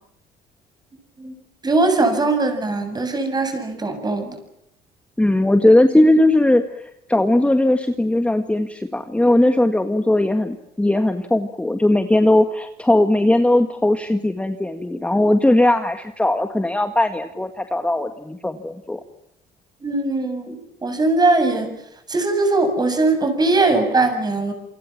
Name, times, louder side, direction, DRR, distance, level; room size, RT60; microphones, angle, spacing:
voice 1, 1.6-4.4 19.8-21.7 22.1-24.5, right 3 dB, 25° right, 7 dB, 7.7 m, -20 dB
voice 2, 5.2-6.8 7.1-19.0, left 1 dB, 5° left, 7 dB, 1.8 m, -18 dB
28.0 x 25.0 x 7.4 m, 0.76 s
cardioid pair, 110°, 17 cm